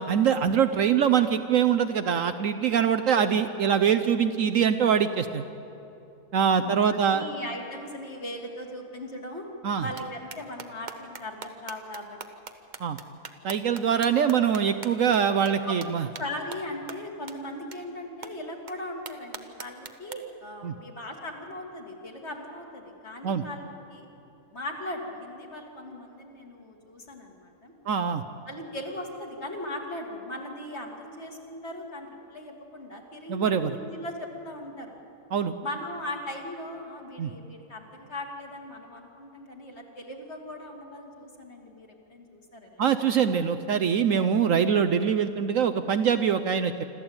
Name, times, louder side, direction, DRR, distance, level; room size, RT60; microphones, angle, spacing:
voice 1, 0.0-5.4 6.3-7.3 9.6-9.8 12.8-13.0 13.4-16.1 20.6-20.7 23.2-23.4 27.9-28.2 33.3-33.8 35.3-35.5 37.2-37.3 42.8-46.8, right 7 dB, 65° right, 10 dB, 1.0 m, -23 dB
voice 2, 7.1-9.5 9.7-12.2 15.7-15.8 16.2-24.1 24.5-27.7 28.5-34.9 35.6-42.8, left 1 dB, 45° left, 1 dB, 2.7 m, -38 dB
sound 1, 10.0-10.1 10.3-15.2 15.4-15.5 15.8-15.9 16.1-16.2 16.5-16.6 16.9-17.0 17.3-17.4 17.7-17.8 18.2-18.3 18.7-18.8 19.1-20.1, right 5 dB, 35° right, 0.9 m, -40 dB
26.5 x 13.5 x 8.8 m, 2.9 s
omnidirectional pair, 1.7 m